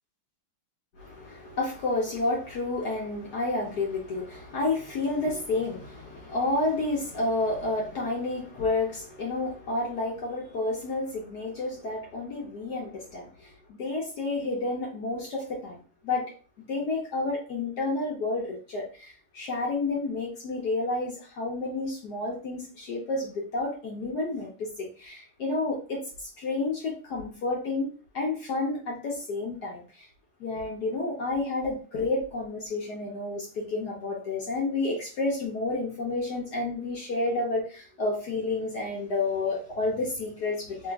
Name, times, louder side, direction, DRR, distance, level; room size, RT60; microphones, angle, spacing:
voice 1, 1.0-16.3 16.7-30.1 30.4-40.9, left 2 dB, 60° left, 1.1 m, -30 dB
3.1 x 2.9 x 3.4 m
omnidirectional pair, 2.4 m